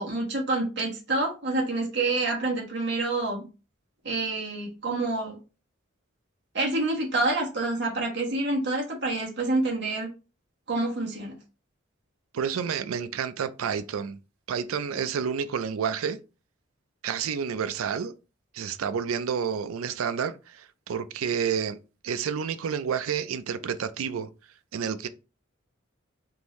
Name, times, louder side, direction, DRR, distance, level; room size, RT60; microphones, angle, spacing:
voice 1, 0.0-3.4 4.0-5.4 6.5-10.1 10.7-11.3, right 2 dB, 55° right, 1.3 m, -27 dB
voice 2, 12.3-14.2 14.5-16.2 17.0-18.1 18.5-21.8 22.0-24.3 24.7-25.1, right 7 dB, 85° right, 0.4 m, -29 dB
3.7 x 2.6 x 3.0 m
head